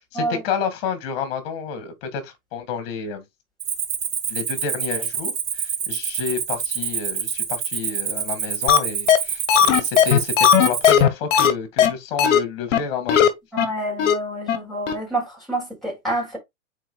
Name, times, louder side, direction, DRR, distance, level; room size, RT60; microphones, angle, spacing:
voice 1, 0.1-3.2 4.3-13.3, left 6 dB, 45° left, 2.3 m, -30 dB
Cricket, 3.6-11.0, right 8 dB, 75° right, 2.1 m, -27 dB
sound 1, 8.7-8.8 9.1-9.2 9.5-11.5 11.8-11.9 12.2-12.4 12.7-12.8 13.1-13.3 13.6-13.7 14.0-14.1 14.5-14.6 14.9-15.0, left 9 dB, 70° left, 1.3 m, -15 dB
voice 2, 13.5-16.4, right 1 dB, ahead, 4.2 m, -28 dB
9.1 x 4.4 x 2.4 m
hypercardioid pair, 140°, 39 cm